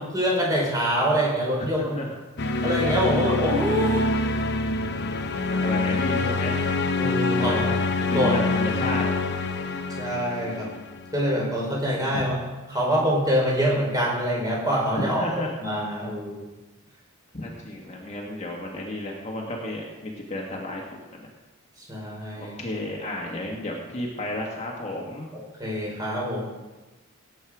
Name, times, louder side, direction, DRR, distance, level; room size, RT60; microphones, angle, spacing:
voice 1, 0.0-2.0 2.6-4.1 7.0-7.6 8.1-8.4 10.0-10.7 11.1-12.4 12.7-15.2 15.6-16.4 21.9-22.5 25.3-26.4, equal, 15° right, -3 dB, 4.5 m, -25 dB
voice 2, 1.6-2.1 5.3-6.6 7.4-9.1 12.0-12.3 14.9-15.5 17.3-21.3 22.4-25.3, left 1 dB, 30° left, -2 dB, 1.8 m, -32 dB
sound 1, 2.4-11.2, left 3 dB, 50° left, 0.8 m, -26 dB
18.0 x 8.6 x 4.9 m, 1.1 s
head